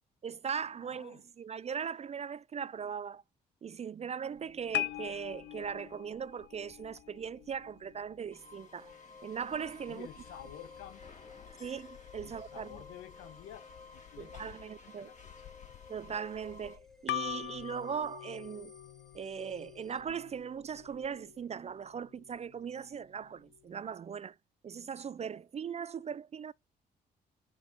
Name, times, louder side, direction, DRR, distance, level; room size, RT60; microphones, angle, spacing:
voice 1, 0.2-3.2 3.6-8.9 9.2-10.1 11.6-12.8 14.2-15.1 15.9-18.7 19.1-24.4 24.6-26.5, right 7 dB, 30° right, 0.3 m, -39 dB
voice 2, 0.8-1.2 9.9-11.0 12.2-15.6, left 11 dB, 75° left, 1.3 m, -51 dB
sound 1, 4.3-23.9, left 15 dB, 55° left, 0.5 m, -45 dB
sound 2, 8.3-16.8, left 3 dB, 35° left, 3.3 m, -55 dB
sound 3, 8.8-20.0, left 5 dB, ahead, 1.5 m, -57 dB
6.2 x 4.9 x 4.2 m
hypercardioid pair, 45°, 21 cm